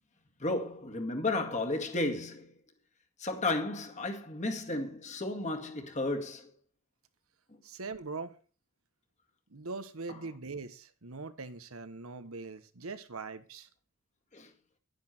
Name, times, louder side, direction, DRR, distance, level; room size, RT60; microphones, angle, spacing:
voice 1, 0.4-2.5 3.2-6.5 14.3-14.5, left 2 dB, 35° left, 1.9 m, -33 dB
voice 2, 7.6-8.3 9.5-13.7, right 4 dB, 85° right, 1.2 m, -41 dB
10.0 x 10.0 x 4.4 m
head